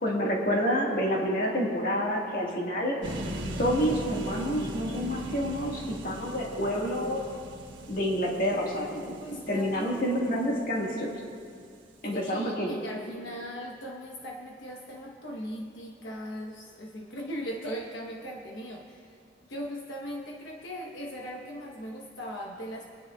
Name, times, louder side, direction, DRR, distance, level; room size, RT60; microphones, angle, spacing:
voice 1, 0.0-3.0 3.6-7.2 7.9-9.2 9.5-11.2 12.0-12.8, equal, 45° left, -2 dB, 1.7 m, -28 dB
sound 1, 3.0-11.1, right 1 dB, 85° right, 1.3 m, -39 dB
voice 2, 9.2-10.1 12.1-19.2 19.5-22.9, equal, 80° left, 0 dB, 1.1 m, -39 dB
25.5 x 9.6 x 2.4 m, 2.2 s
head